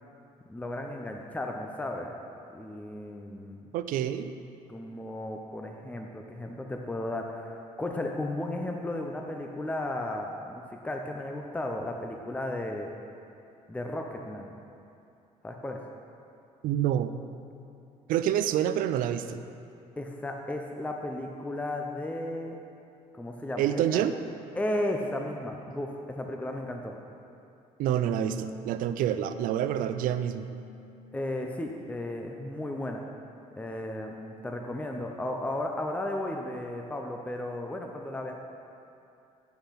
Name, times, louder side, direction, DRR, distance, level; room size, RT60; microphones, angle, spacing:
voice 1, 0.5-2.2 2.5-3.7 4.7-12.9 13.7-14.5 15.4-15.8 20.0-22.6 23.1-23.6 23.9-24.0 24.5-26.9 31.1-33.0 33.6-38.3, left 1 dB, 10° left, 2 dB, 0.6 m, -34 dB
voice 2, 3.7-4.3 16.6-17.1 18.1-19.4 23.6-24.1 27.8-30.5, right 10 dB, 75° right, 11 dB, 0.4 m, -27 dB
sound 1, 28.1-32.6 32.9-34.3, equal, 20° right, 1.3 m, -51 dB
8.7 x 5.7 x 5.7 m, 2.6 s
cardioid pair, 100°, 14 cm